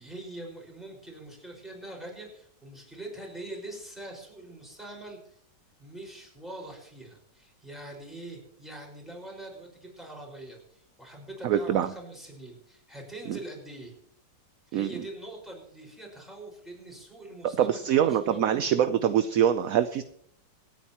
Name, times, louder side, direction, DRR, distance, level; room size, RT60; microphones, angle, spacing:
voice 1, 0.0-5.4 5.8-14.0 14.7-18.6, right 1 dB, ahead, -1 dB, 5.1 m, -43 dB
voice 2, 11.4-11.9 13.3-13.4 14.7-14.9 17.6-20.0, right 10 dB, 65° right, 11 dB, 0.9 m, -24 dB
27.0 x 9.0 x 3.0 m, 0.67 s
omnidirectional pair, 1.9 m